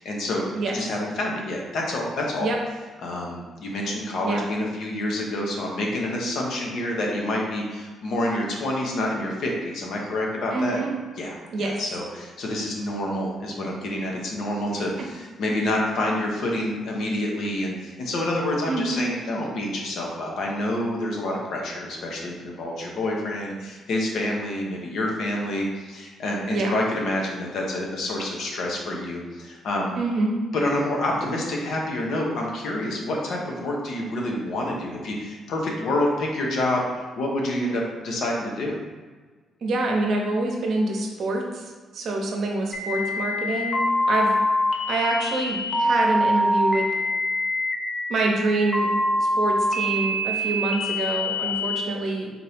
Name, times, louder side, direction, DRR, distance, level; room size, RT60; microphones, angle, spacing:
voice 1, 0.0-0.4 0.7-2.5 3.0-10.8 11.2-29.9 30.5-38.8, left 1 dB, 70° left, -1 dB, 0.9 m, -28 dB
voice 2, 10.5-10.9 11.5-11.8 18.7-19.0 26.5-26.7 30.0-30.3 39.6-43.8 44.1-44.4 44.9-46.9 48.1-48.9 49.2-52.3, right 2 dB, 65° right, 0 dB, 0.8 m, -26 dB
sound 1, 42.7-51.7, left 1 dB, 40° left, 0.6 m, -24 dB
4.2 x 2.8 x 3.5 m, 1.4 s
cardioid pair, 90°, 0 cm